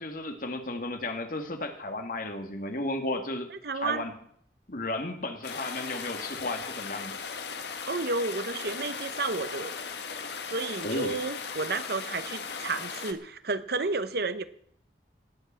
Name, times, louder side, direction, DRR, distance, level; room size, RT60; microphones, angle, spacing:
voice 1, 0.0-3.5 3.7-4.1 4.7-7.1 10.8-11.1, left 2 dB, 50° left, 5 dB, 2.0 m, -34 dB
voice 2, 3.5-4.0 7.9-9.8 10.4-14.4, right 3 dB, 60° right, 12 dB, 1.0 m, -31 dB
sound 1, 5.4-13.1, left 5 dB, 70° left, 1.4 m, -37 dB
18.5 x 8.0 x 7.5 m, 0.64 s
head